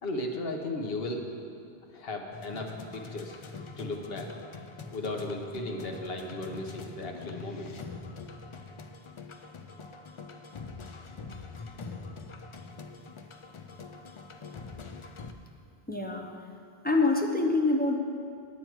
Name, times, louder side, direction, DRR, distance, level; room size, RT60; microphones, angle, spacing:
voice 1, 0.0-1.2 1.9-3.4 3.8-4.3 4.9-7.7, left 2 dB, 70° left, 2 dB, 1.1 m, -35 dB
sound 1, 2.3-15.3, left 4 dB, 45° left, 0.4 m, -44 dB
voice 2, 15.9-16.3 16.8-18.0, left 3 dB, 10° left, 1 dB, 0.7 m, -25 dB
9.4 x 9.2 x 4.6 m, 2.4 s
omnidirectional pair, 1.1 m